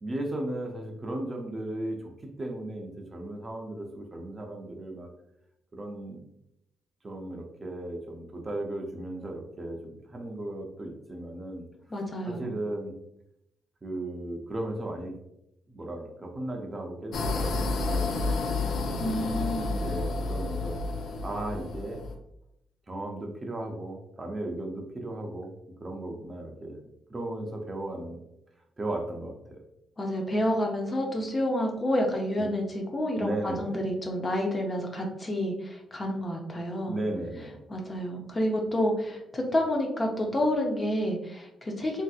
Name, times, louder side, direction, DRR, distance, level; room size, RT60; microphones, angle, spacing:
voice 1, 0.0-5.1 5.7-6.2 7.0-11.6 12.2-12.9 13.8-15.2 15.7-18.6 19.1-20.8 21.2-22.0 22.9-25.5 25.8-26.8 27.1-28.2 28.8-29.6 32.4-32.5 33.2-33.8 36.8-37.6, right 1 dB, 25° right, 1 dB, 0.5 m, -36 dB
voice 2, 11.9-12.5 19.0-19.7 30.0-37.0 37.7-42.0, left 1 dB, 25° left, 1 dB, 0.5 m, -29 dB
sound 1, 17.1-22.1, left 3 dB, 75° left, 0.4 m, -30 dB
3.3 x 2.7 x 2.3 m, 0.81 s
cardioid pair, 125°, 0 cm